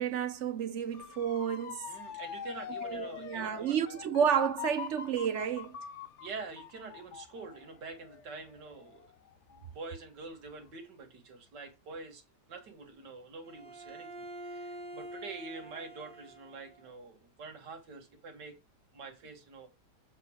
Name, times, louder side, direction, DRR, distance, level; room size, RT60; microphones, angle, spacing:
voice 1, 0.0-1.9 2.8-5.8, right 8 dB, 55° right, 0.8 m, -31 dB
Motor vehicle (road) / Siren, 0.9-9.8 10.3-10.7, left 9 dB, 60° left, 0.8 m, -44 dB
voice 2, 1.9-4.0 6.2-9.1 9.5-12.2 12.5-14.1 14.4-18.6 18.9-19.7, right 3 dB, 80° right, 2.3 m, -46 dB
Bowed string instrument, 13.4-16.9, right 1 dB, 5° left, 0.4 m, -46 dB
7.6 x 4.3 x 6.3 m
omnidirectional pair, 1.8 m